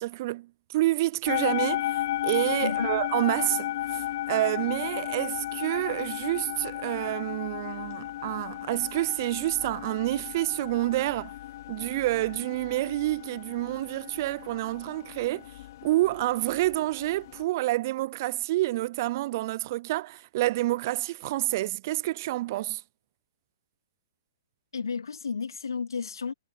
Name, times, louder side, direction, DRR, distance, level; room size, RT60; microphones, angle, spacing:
voice 1, 0.0-11.3 11.7-15.5 15.8-22.8, right 17 dB, 45° right, 0.5 m, -28 dB
sound 1, 1.3-17.4, left 14 dB, 50° left, 2.4 m, -34 dB
voice 2, 2.6-3.0 24.7-26.3, left 5 dB, 75° left, 3.0 m, -32 dB
figure-of-eight pair, 120°, 2 cm